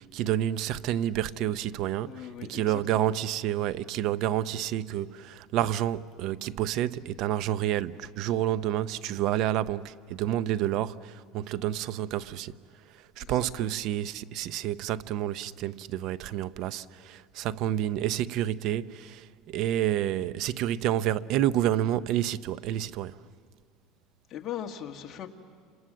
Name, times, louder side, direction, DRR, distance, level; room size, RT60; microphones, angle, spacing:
voice 1, 0.0-12.6 12.9-23.2, right 12 dB, 55° right, 0.6 m, -29 dB
voice 2, 2.1-2.8 13.2-13.5 24.3-25.3, left 10 dB, 35° left, 1.7 m, -39 dB
28.5 x 27.0 x 7.5 m
cardioid pair, 145°, 0 cm